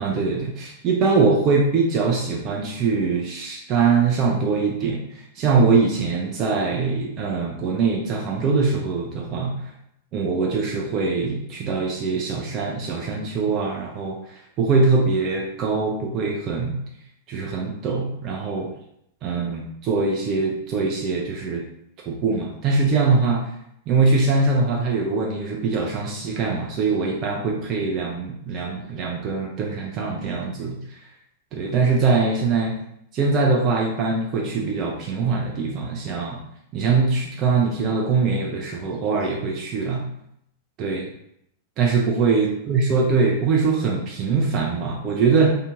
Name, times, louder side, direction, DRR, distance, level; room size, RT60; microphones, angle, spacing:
voice 1, 0.0-9.5 10.1-16.8 17.3-18.7 19.2-21.6 22.1-23.4 23.9-31.0 31.5-32.7 33.1-36.4 36.7-40.0 40.8-41.1 41.8-45.5, right 4 dB, 35° right, -1 dB, 0.5 m, -22 dB
3.3 x 2.8 x 2.8 m, 0.76 s
figure-of-eight pair, 95°, 0 cm